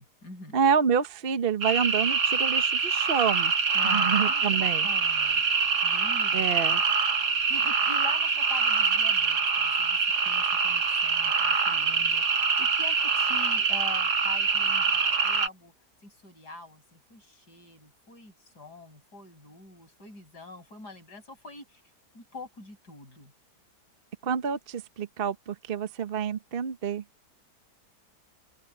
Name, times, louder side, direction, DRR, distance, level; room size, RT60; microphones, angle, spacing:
voice 1, 0.0-0.6 3.7-5.4 5.8-6.4 7.2-15.7 16.0-21.8 22.1-23.3, left 2 dB, 75° left, 7.7 m, -45 dB
voice 2, 0.5-3.5 3.8-4.9 6.3-6.8 24.2-27.0, right 7 dB, 40° right, 1.0 m, -28 dB
sound 1, 1.6-15.5, right 5 dB, 70° right, 2.4 m, -25 dB
open air
omnidirectional pair, 1.8 m